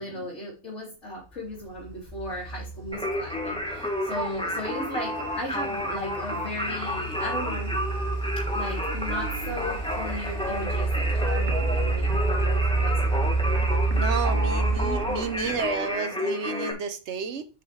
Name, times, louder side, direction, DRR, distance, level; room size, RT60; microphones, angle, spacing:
voice 1, 0.0-7.7 8.5-13.3, equal, 85° left, 3.2 m, -36 dB
sound 1, 1.5-15.9, right 3 dB, 30° left, 2.7 m, -29 dB
Singing, 2.9-16.7, left 1 dB, 5° left, 1.4 m, -31 dB
voice 2, 13.9-17.5, right 5 dB, 75° right, 1.2 m, -31 dB
9.0 x 5.1 x 3.2 m
omnidirectional pair, 1.2 m